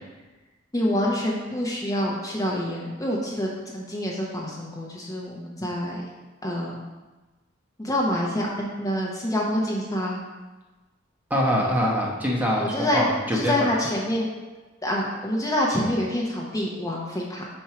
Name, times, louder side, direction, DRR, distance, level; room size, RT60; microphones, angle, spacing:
voice 1, 0.7-6.0 6.4-6.8 7.8-10.2 12.6-14.3 14.8-17.4, left 1 dB, 20° left, -3 dB, 0.8 m, -26 dB
voice 2, 11.3-13.6, equal, 10° right, -3 dB, 0.9 m, -24 dB
4.5 x 4.4 x 5.8 m, 1.2 s
head